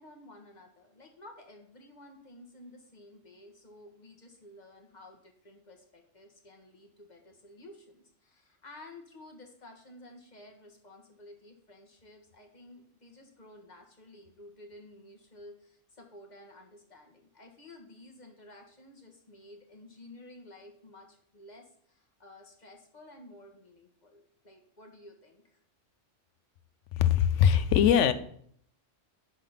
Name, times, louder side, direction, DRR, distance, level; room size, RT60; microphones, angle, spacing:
voice 1, 0.0-25.6, left 1 dB, 35° left, 2 dB, 1.5 m, -53 dB
voice 2, 27.0-28.1, left 9 dB, 70° left, 12 dB, 1.0 m, -22 dB
10.0 x 3.8 x 5.8 m, 0.63 s
omnidirectional pair, 1.3 m